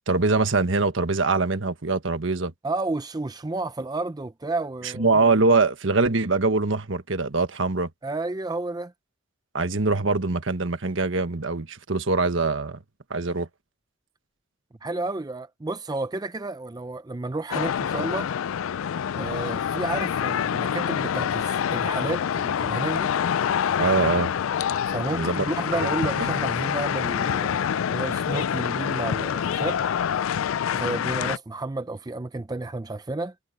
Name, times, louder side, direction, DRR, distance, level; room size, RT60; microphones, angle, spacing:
voice 1, 0.1-2.5 5.0-7.9 9.5-12.8 13.1-13.5 23.8-24.3 25.1-25.4 25.8-25.9 26.2-26.3, right 3 dB, 65° right, 1.4 m, -23 dB
voice 2, 2.6-5.1 8.0-8.9 14.8-18.3 19.1-23.1 24.9-27.6 27.9-29.8 30.7-33.3, right 2 dB, 20° right, 0.5 m, -31 dB
sound 1, 17.5-31.4, left 8 dB, 80° left, 0.4 m, -26 dB
head